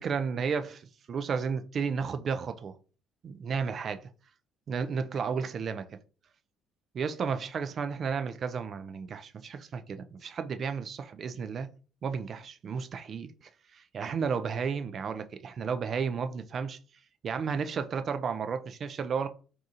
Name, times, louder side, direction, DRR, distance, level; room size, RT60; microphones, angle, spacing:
voice 1, 0.0-2.8 3.2-4.0 4.7-6.0 6.9-11.7 12.0-13.3 13.7-16.8 17.2-19.3, right 6 dB, 50° right, 0.4 m, -33 dB
2.8 x 2.4 x 3.8 m
hypercardioid pair, 55°, 0 cm